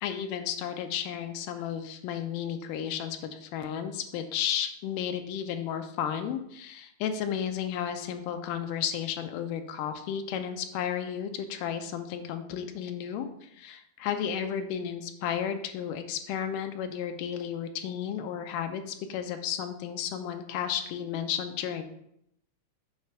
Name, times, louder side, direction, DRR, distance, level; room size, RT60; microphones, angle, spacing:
voice 1, 0.0-21.8, left 9 dB, 85° left, 7 dB, 2.1 m, -33 dB
7.3 x 3.2 x 4.4 m, 0.76 s
omnidirectional pair, 3.7 m